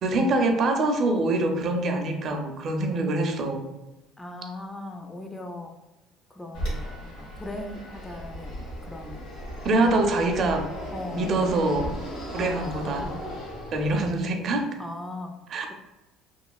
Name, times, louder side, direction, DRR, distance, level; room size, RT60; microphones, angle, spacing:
voice 1, 0.0-3.6 9.6-10.7 11.1-11.9 12.3-13.1 13.7-14.7 15.5-15.7, right 2 dB, 50° right, 4 dB, 0.4 m, -24 dB
voice 2, 4.2-5.8 6.3-9.3 9.6-9.9 10.9-11.6 12.4-13.3 14.8-15.4, left 2 dB, 15° left, 4 dB, 0.3 m, -39 dB
Fixed-wing aircraft airplane, 6.5-14.3, equal, 75° left, 1.3 m, -36 dB
3.0 x 2.3 x 2.3 m, 1.0 s
cardioid pair, 105°, 0 cm